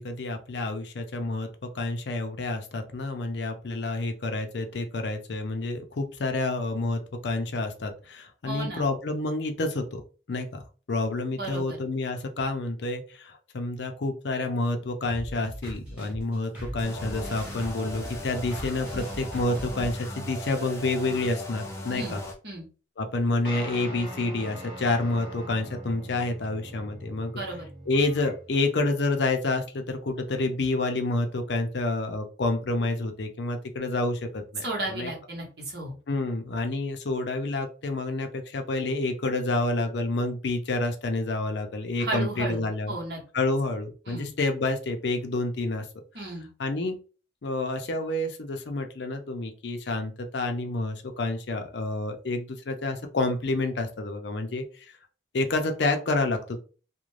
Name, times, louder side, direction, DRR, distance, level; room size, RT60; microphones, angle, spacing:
voice 1, 0.0-10.0 10.3-10.6 10.9-22.2 23.0-27.3 27.9-35.1 36.1-42.9 43.3-45.9 46.6-47.0 47.4-54.9 55.3-56.6, left 2 dB, 65° left, 5 dB, 0.5 m, -29 dB
voice 2, 8.5-8.9 11.4-11.8 21.9-22.2 22.4-22.7 27.3-27.7 34.6-36.0 42.0-43.2 44.1-44.3 46.1-46.5, right 2 dB, 55° right, -1 dB, 1.0 m, -34 dB
sound 1, 15.1-19.9, right 1 dB, 5° right, 1.0 m, -39 dB
sound 2, 16.8-22.3, left 1 dB, 15° left, 0.4 m, -38 dB
sound 3, 23.4-28.6, right 1 dB, 25° right, 0.6 m, -42 dB
2.4 x 2.1 x 3.1 m, 0.36 s
head